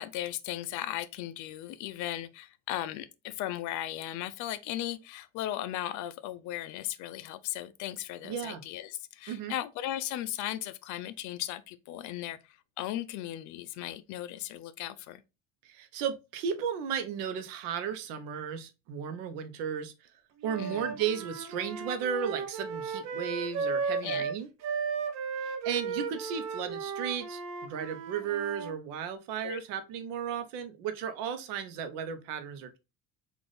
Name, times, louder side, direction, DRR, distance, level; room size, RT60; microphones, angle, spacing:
voice 1, 0.0-15.2 20.6-20.9 24.0-24.3 29.4-29.6, left 13 dB, 65° left, 0.5 m, -37 dB
voice 2, 8.2-8.6 9.3-9.5 15.6-20.1 20.4-24.5 25.4-32.8, right 7 dB, 85° right, 0.8 m, -35 dB
Wind instrument woodwind instrument, 20.4-28.7, right 5 dB, 55° right, 0.7 m, -35 dB
4.0 x 2.5 x 3.3 m
cardioid pair, 140°, 33 cm